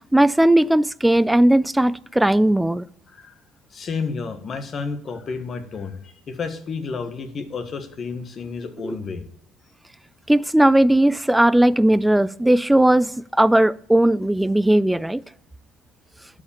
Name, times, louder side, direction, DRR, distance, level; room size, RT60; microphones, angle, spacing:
voice 1, 0.1-2.9 8.8-9.0 10.3-15.2, right 1 dB, 5° right, 0.3 m, -17 dB
voice 2, 3.7-9.2, left 5 dB, 40° left, 1.5 m, -31 dB
11.5 x 5.1 x 7.1 m
cardioid pair, 110°, 0 cm